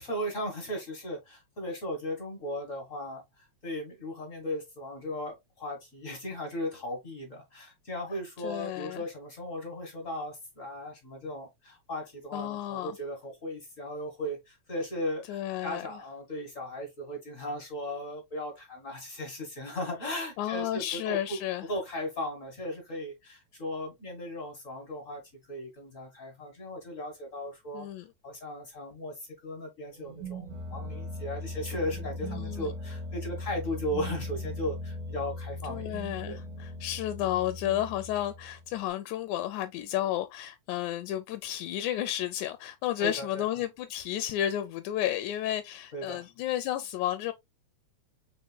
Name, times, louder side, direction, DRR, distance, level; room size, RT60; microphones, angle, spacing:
voice 1, 0.0-25.2 25.5-27.9 28.2-30.4 30.7-35.9 36.3-36.4 43.0-43.5 45.9-46.2, left 1 dB, 35° left, 1.3 m, -37 dB
voice 2, 8.4-9.0 12.3-13.0 15.3-16.0 20.4-21.7 27.7-28.1 32.2-32.7 35.7-47.3, left 12 dB, 85° left, 2.0 m, -32 dB
sound 1, 30.0-38.8, left 1 dB, 75° right, 2.9 m, -39 dB
5.4 x 4.3 x 2.3 m
omnidirectional pair, 3.4 m